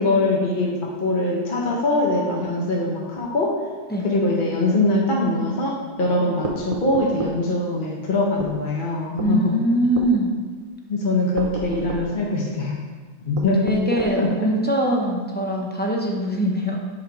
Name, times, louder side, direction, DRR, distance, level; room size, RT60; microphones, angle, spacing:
voice 1, 0.0-3.5 4.0-9.5 10.9-12.8 13.3-13.6 14.2-14.3, left 2 dB, 45° left, -2 dB, 0.8 m, -22 dB
sound 1, 6.4-7.4 8.4-8.6 9.2-9.4 10.0-10.1 11.4-12.1 13.4-14.2, right 2 dB, 55° right, 0.4 m, -31 dB
voice 2, 9.2-10.4 13.6-16.8, right 1 dB, 15° left, -1 dB, 0.4 m, -22 dB
7.3 x 3.2 x 4.5 m, 1.4 s
omnidirectional pair, 1.4 m